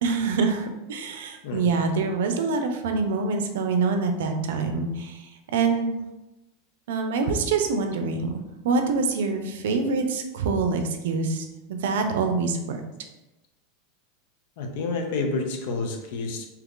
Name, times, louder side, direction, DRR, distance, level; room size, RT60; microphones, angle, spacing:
voice 1, 0.0-5.2 5.5-5.9 6.9-8.3 8.6-12.8, right 4 dB, 80° right, 6 dB, 0.5 m, -25 dB
voice 2, 14.6-16.5, left 3 dB, 65° left, 4 dB, 0.6 m, -29 dB
2.9 x 2.4 x 3.6 m, 1.0 s
supercardioid pair, 155°, 0 cm